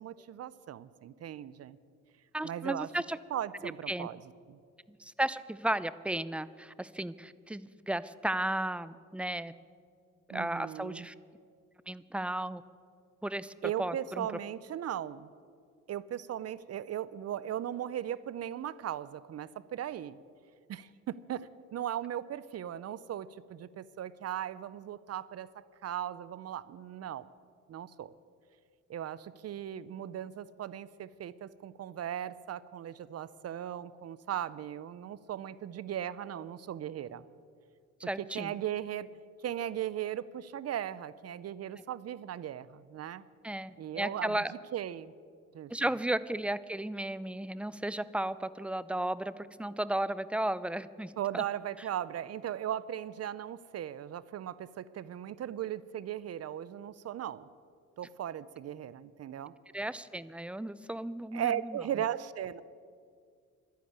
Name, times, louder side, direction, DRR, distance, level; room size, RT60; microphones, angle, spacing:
voice 1, 0.0-1.8 2.4-2.9 3.3-4.2 4.5-4.6 10.3-11.1 13.6-15.3 15.9-20.2 20.7-27.3 27.7-28.1 28.9-37.2 38.2-39.1 39.4-43.2 43.8-44.4 44.7-45.1 45.5-45.7 51.2-57.5 58.0-59.5 61.3-62.6, right 10 dB, 55° right, 18 dB, 0.6 m, -38 dB
voice 2, 2.3-3.2 3.6-4.1 4.9-9.5 10.3-11.1 11.9-12.6 13.2-13.5 13.8-14.3 38.1-38.5 43.4-44.5 45.7-51.4 59.7-61.8, right 1 dB, 5° right, 16 dB, 0.5 m, -34 dB
12.0 x 10.5 x 9.4 m, 2.1 s
cardioid pair, 90°, 30 cm